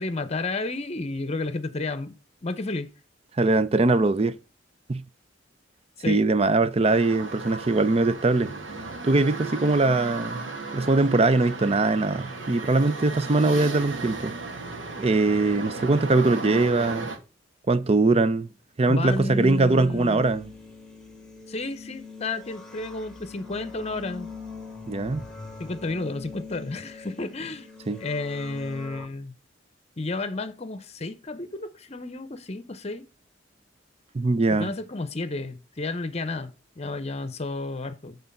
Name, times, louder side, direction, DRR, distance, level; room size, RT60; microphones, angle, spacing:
voice 1, 0.0-2.2 2.4-2.9 6.0-6.2 18.9-20.2 21.5-24.3 25.6-27.7 28.0-29.3 30.0-33.1 34.5-38.2, left 2 dB, 35° left, 0.8 m, -32 dB
voice 2, 3.4-4.4 4.9-5.0 6.1-8.5 9.0-14.3 15.0-17.1 17.7-18.5 18.8-20.5 24.9-25.2 27.9-28.0 34.1-34.7, right 3 dB, 35° right, 0.5 m, -22 dB
sound 1, 6.8-17.2, right 3 dB, 85° right, 2.0 m, -35 dB
sound 2, 19.1-29.1, left 4 dB, 5° left, 1.6 m, -42 dB
8.1 x 3.9 x 5.4 m
head